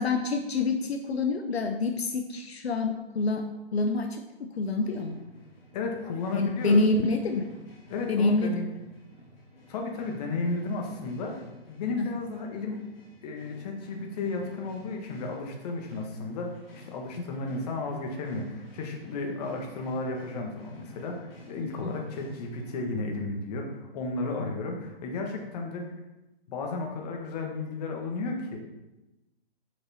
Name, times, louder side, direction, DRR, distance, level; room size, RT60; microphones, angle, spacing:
voice 1, 0.0-3.5 3.7-5.2 6.3-7.5 8.1-8.5 12.0-12.1 24.4-24.5, left 3 dB, 80° left, 6 dB, 0.7 m, -27 dB
sound 1, 4.8-22.7, equal, 65° left, 2.4 m, -53 dB
voice 2, 5.7-6.8 7.9-8.7 9.7-12.8 13.2-25.9 26.5-28.6, left 3 dB, 40° left, 2 dB, 1.5 m, -33 dB
6.5 x 5.4 x 4.2 m, 1.0 s
hypercardioid pair, 135°, 31 cm